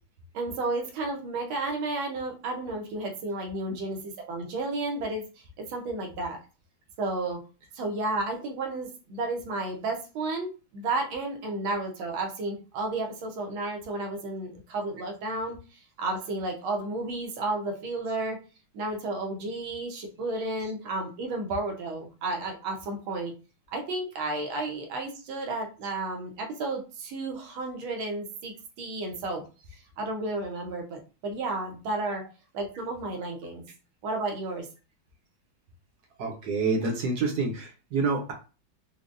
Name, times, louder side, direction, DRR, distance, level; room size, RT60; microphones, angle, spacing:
voice 1, 0.3-6.4 7.0-7.4 7.7-15.6 16.0-18.4 18.7-23.3 23.7-29.4 30.0-32.2 32.5-33.6 34.0-34.7, right 2 dB, 90° right, 2 dB, 1.7 m, -32 dB
voice 2, 36.2-38.3, right 4 dB, 65° right, 1 dB, 1.1 m, -27 dB
4.9 x 2.1 x 2.5 m, 0.33 s
omnidirectional pair, 2.2 m